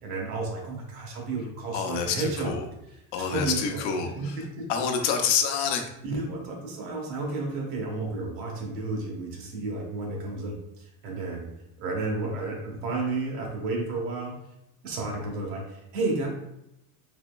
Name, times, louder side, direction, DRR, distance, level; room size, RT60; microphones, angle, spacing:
voice 1, 0.0-2.6 3.2-3.8 4.2-4.7 6.0-11.5 11.8-14.4 14.8-16.3, right 3 dB, 90° right, 0 dB, 1.3 m, -32 dB
voice 2, 1.7-2.7 3.1-5.8, left 6 dB, 70° left, 5 dB, 0.7 m, -28 dB
4.3 x 3.0 x 2.2 m, 0.84 s
cardioid pair, 135°, 41 cm